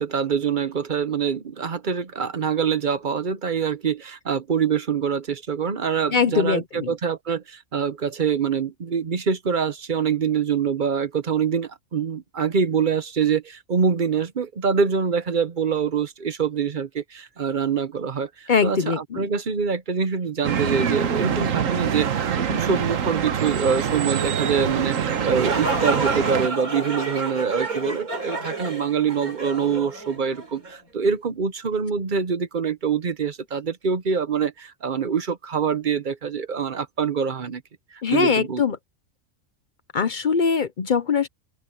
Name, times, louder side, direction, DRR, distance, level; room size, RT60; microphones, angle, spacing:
voice 1, 0.0-37.6 37.9-38.6, right 6 dB, 40° right, 0.9 m, -25 dB
voice 2, 6.1-6.9 18.5-19.3 38.0-38.8 39.9-41.3, left 6 dB, 50° left, 0.6 m, -22 dB
sound 1, 20.4-26.5, right 8 dB, 65° right, 1.4 m, -25 dB
sound 2, 25.0-30.8, right 3 dB, 90° right, 4.6 m, -29 dB
open air
omnidirectional pair, 1.5 m